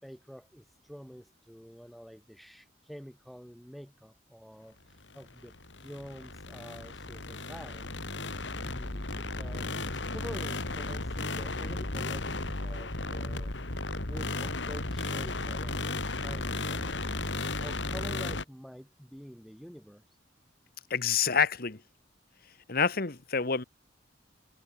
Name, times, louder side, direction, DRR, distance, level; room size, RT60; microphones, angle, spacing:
voice 1, 0.0-5.5 5.8-7.9 8.6-13.5 14.1-17.0 17.6-20.0, equal, ahead, 4.3 m, -48 dB
sound 1, 5.1-18.4, left 2 dB, 85° left, 2.7 m, -35 dB
voice 2, 20.9-21.8 22.7-23.6, left 6 dB, 55° left, 1.5 m, -27 dB
head